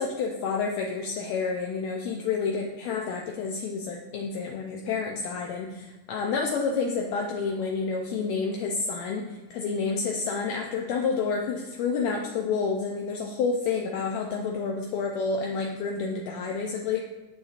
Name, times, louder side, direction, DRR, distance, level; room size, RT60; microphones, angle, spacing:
voice 1, 0.0-17.0, left 5 dB, 80° left, 0 dB, 1.6 m, -29 dB
7.8 x 7.0 x 2.4 m, 1.1 s
omnidirectional pair, 3.7 m